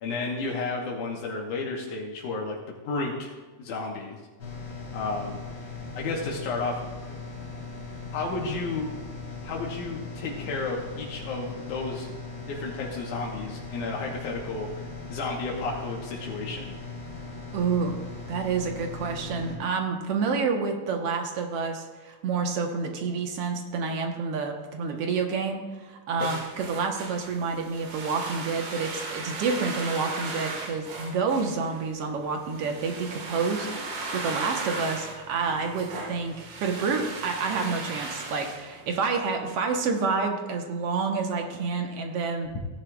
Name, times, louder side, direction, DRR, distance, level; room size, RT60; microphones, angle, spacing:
voice 1, 0.0-3.3 3.6-4.2 4.9-5.4 5.9-7.2 8.1-8.9 9.4-12.1 12.5-14.7 15.1-16.7 26.1-26.3, left 3 dB, 80° left, -1 dB, 2.6 m, -32 dB
sound 1, 4.4-19.6, left 3 dB, 40° left, 2.8 m, -39 dB
voice 2, 17.5-18.0 18.3-33.7 34.1-42.5, right 5 dB, 60° right, 3 dB, 1.8 m, -28 dB
sound 2, 26.2-39.2, right 3 dB, 85° right, 3.3 m, -37 dB
16.5 x 10.5 x 2.4 m, 1.3 s
omnidirectional pair, 3.6 m